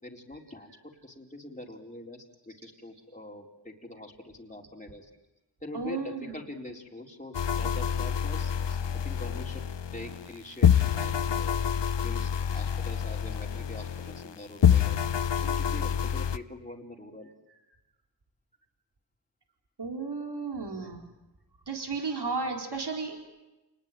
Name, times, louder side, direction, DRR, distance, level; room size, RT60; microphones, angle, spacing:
voice 1, 0.0-5.1 5.6-8.5 9.0-9.7 9.9-11.7 12.0-17.3 20.1-20.4, left 1 dB, 15° left, 0 dB, 4.2 m, -44 dB
voice 2, 5.7-6.4 19.8-21.0 21.7-23.3, right 4 dB, 70° right, 3 dB, 4.1 m, -34 dB
sound 1, 7.3-10.3 10.6-14.3 14.6-16.4, left 8 dB, 85° left, 1.0 m, -27 dB
29.0 x 20.0 x 9.2 m, 1.0 s
wide cardioid pair, 65°, 42 cm